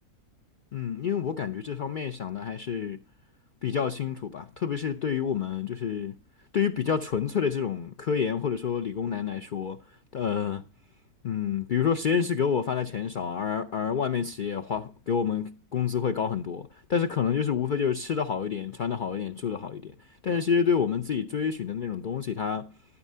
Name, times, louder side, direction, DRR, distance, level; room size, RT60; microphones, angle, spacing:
voice 1, 0.7-3.0 3.6-6.1 6.5-9.8 10.1-10.6 11.2-19.9 20.2-22.7, left 7 dB, 85° left, 0.4 m, -28 dB
12.5 x 5.8 x 5.4 m
omnidirectional pair, 1.6 m